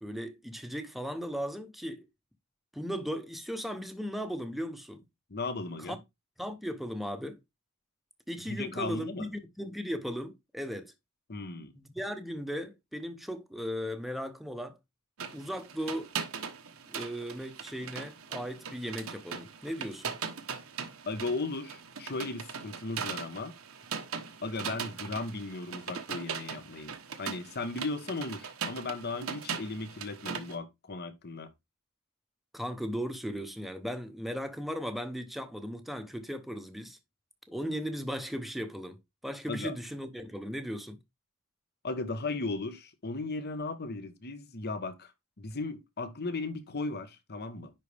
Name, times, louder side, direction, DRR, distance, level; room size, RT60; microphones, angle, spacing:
voice 1, 0.0-2.1 2.7-5.0 5.9-6.0 6.4-7.4 8.3-10.9 11.7-14.8 15.3-16.1 16.9-20.2 32.5-37.0 37.5-41.0, equal, ahead, 0.9 m, -37 dB
voice 2, 5.3-6.0 8.5-9.3 11.3-11.7 21.1-23.5 24.4-31.5 39.5-39.8 41.8-45.1 45.4-47.7, left 3 dB, 50° left, 1.1 m, -36 dB
sound 1, 15.2-30.5, right 6 dB, 75° right, 1.1 m, -40 dB
10.0 x 4.1 x 3.4 m
head